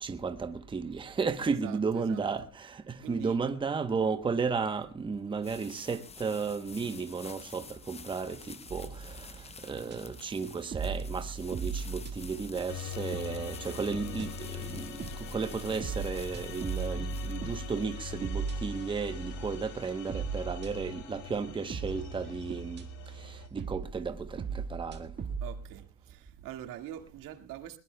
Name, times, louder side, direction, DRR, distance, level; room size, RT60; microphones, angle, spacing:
voice 1, 0.0-22.8 23.2-25.1, right 5 dB, 15° right, 0.9 m, -34 dB
voice 2, 1.5-2.2 3.0-3.4 25.4-27.8, right 12 dB, 80° right, 1.9 m, -44 dB
sound 1, 4.6-19.1, left 5 dB, 20° left, 0.8 m, -50 dB
sound 2, 8.7-10.0 10.4-25.8, right 5 dB, 30° right, 1.7 m, -39 dB
sound 3, 12.7-23.5, left 9 dB, 60° left, 2.6 m, -44 dB
21.5 x 21.0 x 2.2 m
cardioid pair, 155°, 32 cm